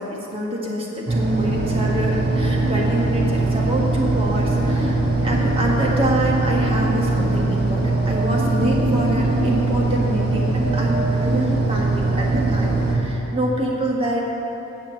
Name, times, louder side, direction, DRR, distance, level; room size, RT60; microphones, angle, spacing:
voice 1, 0.1-14.2, right 1 dB, 30° right, -2 dB, 1.7 m, -26 dB
sound 1, 1.1-13.0, right 2 dB, 55° right, 1.6 m, -21 dB
9.6 x 7.5 x 7.6 m, 2.9 s
head